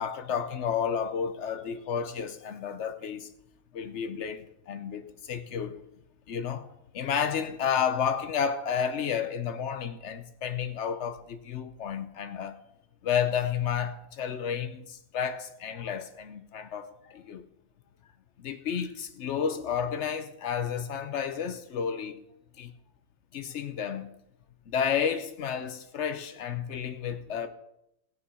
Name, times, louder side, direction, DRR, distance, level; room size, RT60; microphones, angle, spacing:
voice 1, 0.0-3.3 3.7-5.9 6.3-12.6 13.0-17.5 18.4-22.2 22.6-22.7 23.3-24.1 24.7-27.5, left 7 dB, 90° left, 0.6 m, -31 dB
19.5 x 6.7 x 4.2 m
omnidirectional pair, 2.1 m